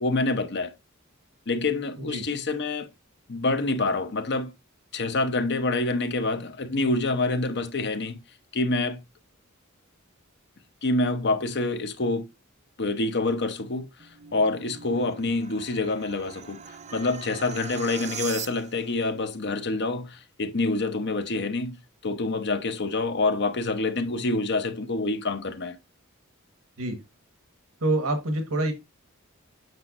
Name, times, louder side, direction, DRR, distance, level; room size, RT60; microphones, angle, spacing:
voice 1, 0.0-0.7 1.5-2.9 3.3-4.5 4.9-8.2 8.5-9.0 10.8-12.2 12.8-21.8 22.0-25.8, left 2 dB, 55° left, 1.0 m, -27 dB
sound 1, 13.8-19.0, right 8 dB, 35° right, 0.5 m, -40 dB
voice 2, 27.8-28.7, right 2 dB, 85° right, 1.6 m, -26 dB
7.9 x 6.0 x 2.6 m
head